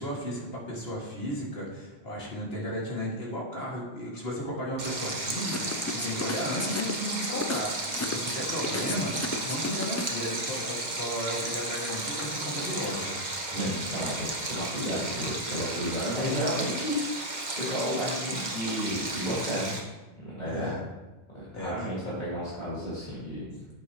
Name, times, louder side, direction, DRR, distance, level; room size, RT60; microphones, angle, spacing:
voice 1, 0.0-13.1 13.5-13.7 20.4-20.8 21.5-22.1 23.5-23.7, equal, 65° left, -4 dB, 2.6 m, -34 dB
Stream, 4.8-19.8, right 2 dB, 45° right, 1.4 m, -34 dB
sound 1, 5.4-10.3, left 3 dB, 25° left, 0.3 m, -35 dB
voice 2, 13.5-16.9 17.6-19.8 20.2-20.7 21.5-23.4, equal, 45° left, -10 dB, 2.5 m, -32 dB
9.6 x 8.2 x 3.1 m, 1.1 s
omnidirectional pair, 1.1 m